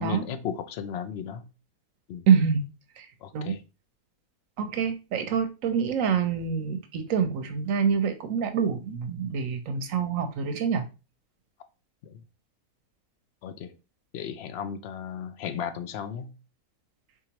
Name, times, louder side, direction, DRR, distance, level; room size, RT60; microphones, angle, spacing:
voice 1, 0.0-1.4 2.1-2.3 3.2-3.6 12.0-12.2 13.4-13.7 14.1-16.3, left 8 dB, 65° left, 0.6 m, -35 dB
voice 2, 2.3-2.7 3.0-3.1 3.3-3.5 4.6-10.8, right 6 dB, 70° right, 0.9 m, -26 dB
4.7 x 3.9 x 2.9 m
omnidirectional pair, 1.6 m